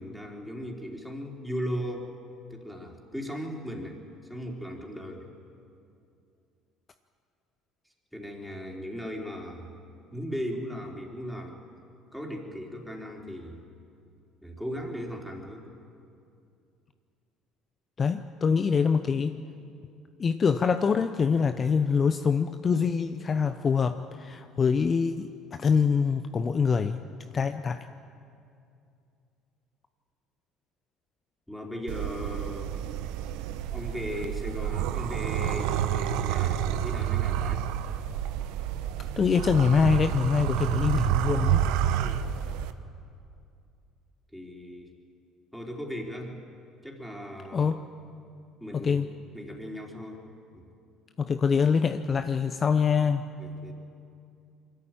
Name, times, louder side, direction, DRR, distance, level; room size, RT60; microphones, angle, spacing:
voice 1, 0.0-2.1 2.5-4.0 4.3-5.3 8.1-9.8 10.1-11.6 12.1-13.6 14.4-15.6 31.5-32.7 33.7-37.6 42.0-42.3 44.3-44.9 45.5-46.4 46.8-47.8 48.6-49.0 49.3-50.2 50.5-50.7 53.4-53.7, equal, ahead, -1 dB, 4.2 m, -37 dB
voice 2, 18.0-19.4 20.2-25.3 25.6-27.0 27.3-27.8 39.2-41.6 47.5-47.8 48.7-49.1 51.2-53.3, left 6 dB, 40° left, 9 dB, 0.8 m, -24 dB
sound 1, 31.9-42.7, right 10 dB, 75° right, 0.9 m, -29 dB
23.0 x 13.5 x 9.2 m, 2.5 s
hypercardioid pair, 70°, 0 cm